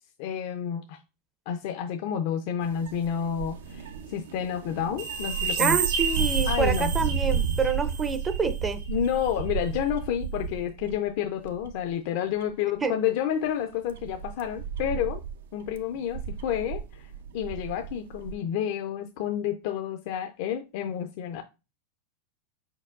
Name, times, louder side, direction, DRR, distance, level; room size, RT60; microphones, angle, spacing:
voice 1, 0.2-1.0 1.5-5.8 6.5-6.9 8.9-15.2 15.5-21.4, left 9 dB, 60° left, 0.4 m, -30 dB
sound 1, 2.6-11.1 11.4-11.9 12.4-12.5 13.4-18.3, right 7 dB, 90° right, 0.4 m, -33 dB
sound 2, 5.0-8.4 8.8-8.9, right 6 dB, 70° right, 1.6 m, -30 dB
voice 2, 5.6-8.8 12.8-12.9, right 5 dB, 20° right, 0.4 m, -27 dB
4.5 x 4.5 x 2.4 m
supercardioid pair, 130°, 0 cm